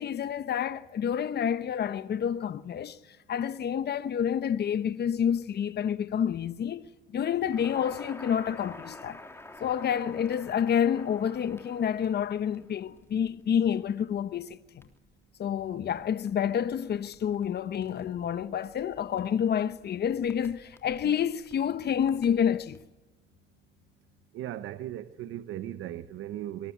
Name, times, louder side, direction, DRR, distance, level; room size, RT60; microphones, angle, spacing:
voice 1, 0.0-3.0 3.3-9.2 9.6-14.8 15.4-22.8, left 8 dB, 55° left, 1.1 m, -29 dB
Crackle, 7.4-22.8, left 2 dB, 10° left, 3.4 m, -51 dB
voice 2, 24.3-26.7, right 12 dB, 90° right, 0.9 m, -37 dB
23.0 x 19.5 x 8.5 m
cardioid pair, 90°, 20 cm